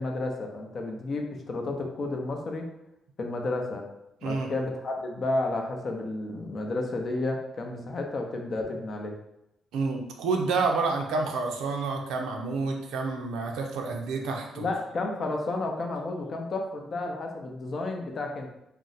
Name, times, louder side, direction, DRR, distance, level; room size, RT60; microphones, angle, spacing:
voice 1, 0.0-2.6 3.2-3.8 4.2-9.2 14.6-18.5, left 2 dB, 45° left, 2 dB, 0.5 m, -31 dB
voice 2, 9.7-14.7, right 4 dB, 85° right, 2 dB, 0.5 m, -29 dB
2.6 x 2.1 x 3.9 m, 0.85 s
cardioid pair, 90°, 0 cm